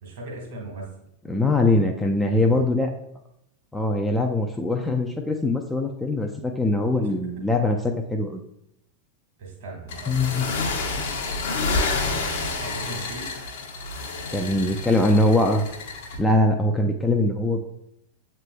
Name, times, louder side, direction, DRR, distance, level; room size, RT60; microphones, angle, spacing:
voice 1, 0.0-0.9 2.2-2.7 6.9-7.1 9.4-10.2 11.8-13.4, right 2 dB, 55° right, -1 dB, 1.6 m, -38 dB
voice 2, 1.3-2.9 3.7-8.4 10.1-10.5 14.3-15.7 16.2-17.6, left 2 dB, 10° left, 3 dB, 0.4 m, -22 dB
sound 1, 9.9-16.2, left 3 dB, 55° left, 0.7 m, -29 dB
7.3 x 3.1 x 2.2 m, 0.76 s
figure-of-eight pair, 90°, 0 cm